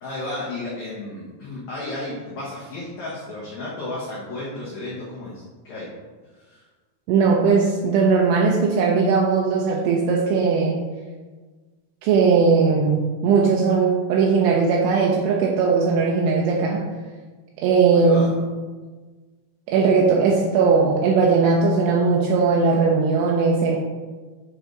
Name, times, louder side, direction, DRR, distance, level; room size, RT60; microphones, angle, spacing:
voice 1, 0.0-5.9 6.4-6.6 17.9-18.4, left 2 dB, 75° left, -7 dB, 1.7 m, -33 dB
voice 2, 7.1-10.8 12.0-16.8 17.6-18.3 19.7-23.8, right 4 dB, 85° right, -2 dB, 2.6 m, -19 dB
8.5 x 3.4 x 3.9 m, 1.4 s
omnidirectional pair, 5.1 m